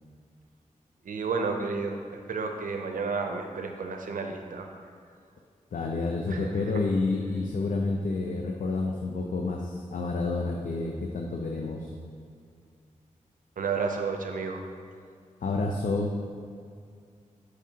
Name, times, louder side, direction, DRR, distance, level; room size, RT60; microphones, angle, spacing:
voice 1, 1.1-2.0 2.3-4.7 6.3-6.4 13.6-14.6, right 4 dB, 80° right, 4 dB, 0.6 m, -31 dB
voice 2, 5.7-11.9 15.4-16.1, left 3 dB, 75° left, 0 dB, 0.6 m, -29 dB
12.5 x 4.8 x 2.8 m, 2.3 s
cardioid pair, 45°, 14 cm